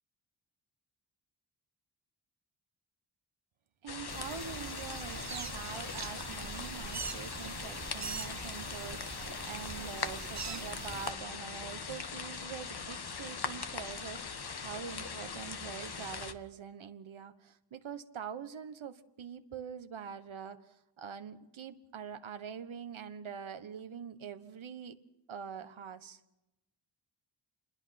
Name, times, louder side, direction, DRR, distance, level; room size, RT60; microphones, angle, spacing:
voice 1, 3.8-24.9 25.3-26.2, right 7 dB, 85° right, 1.4 m, -44 dB
sound 1, 3.9-16.3, left 5 dB, 55° left, 1.4 m, -41 dB
sound 2, 4.1-11.1, right 5 dB, 35° right, 0.9 m, -43 dB
27.5 x 21.0 x 6.0 m
wide cardioid pair, 85°, 47 cm